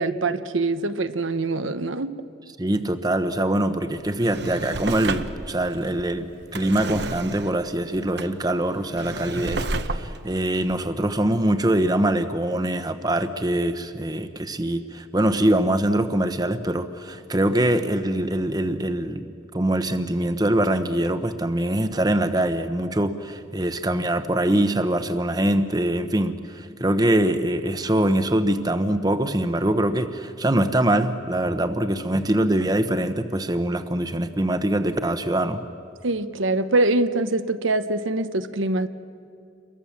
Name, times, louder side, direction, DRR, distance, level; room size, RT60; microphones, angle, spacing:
voice 1, 0.0-2.1 36.0-38.9, right 2 dB, 80° right, 10 dB, 1.0 m, -24 dB
voice 2, 2.6-19.3 19.5-35.6, right 1 dB, 20° right, 10 dB, 1.0 m, -23 dB
Drawer open or close, 4.0-11.7 12.1-12.2, right 2 dB, 55° right, 1.0 m, -32 dB
29.5 x 23.0 x 7.3 m, 2.4 s
head